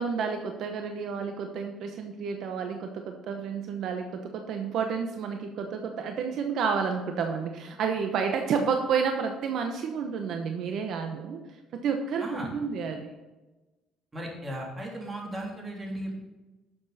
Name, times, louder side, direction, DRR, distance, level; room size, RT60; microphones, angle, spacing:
voice 1, 0.0-11.4 11.7-13.1, right 6 dB, 65° right, 4 dB, 1.0 m, -30 dB
voice 2, 14.1-16.1, right 1 dB, 20° right, -1 dB, 3.4 m, -36 dB
11.5 x 7.2 x 4.2 m, 1.1 s
cardioid pair, 110°, 0 cm